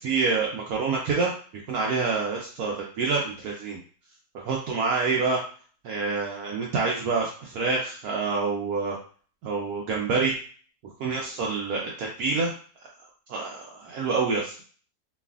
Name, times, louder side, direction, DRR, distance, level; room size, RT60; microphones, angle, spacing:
voice 1, 0.0-1.3 1.7-3.8 4.3-5.4 5.8-9.0 9.4-10.3 11.0-12.5 13.3-14.5, right 4 dB, 70° right, -2 dB, 1.0 m, -27 dB
3.2 x 2.4 x 2.3 m, 0.42 s
omnidirectional pair, 1.8 m